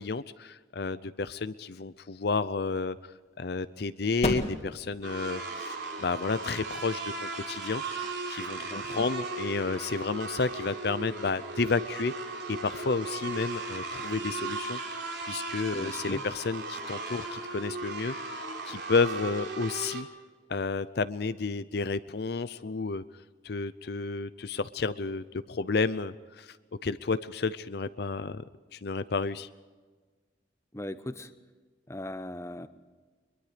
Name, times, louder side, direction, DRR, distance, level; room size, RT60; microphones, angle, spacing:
voice 1, 0.0-3.0 3.4-7.8 8.3-14.8 15.2-20.1 20.5-23.0 23.4-26.6 26.8-28.4 28.7-29.5, left 4 dB, 60° left, 14 dB, 0.6 m, -31 dB
sound 1, 1.9-8.9, left 1 dB, 35° left, 2.1 m, -39 dB
sound 2, 5.0-20.0, right 3 dB, 70° right, 3.7 m, -37 dB
voice 2, 8.6-9.1 15.7-16.2 30.7-31.3 31.9-32.7, left 1 dB, 15° left, 11 dB, 0.8 m, -39 dB
23.0 x 22.5 x 5.1 m, 1.4 s
head